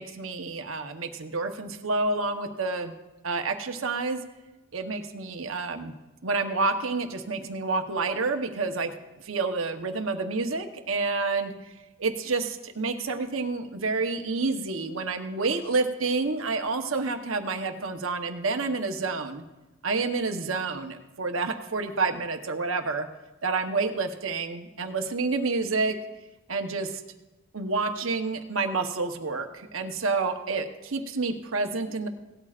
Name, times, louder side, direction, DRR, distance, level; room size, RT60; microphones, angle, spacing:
voice 1, 0.0-2.9 3.2-4.2 4.7-5.9 6.2-8.9 9.2-11.5 12.0-19.4 19.8-23.1 23.4-26.0 26.5-27.0 27.5-32.1, right 3 dB, 70° right, 6 dB, 1.0 m, -29 dB
18.0 x 13.0 x 2.5 m, 1.1 s
head